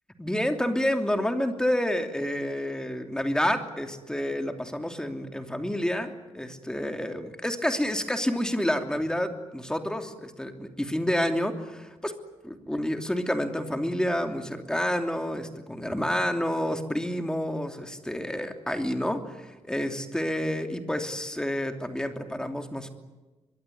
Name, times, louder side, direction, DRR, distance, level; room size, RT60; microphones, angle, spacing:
voice 1, 0.2-12.1 12.4-22.9, equal, 5° left, 5 dB, 3.0 m, -29 dB
23.5 x 23.0 x 9.5 m, 1.2 s
wide cardioid pair, 135°, 12 cm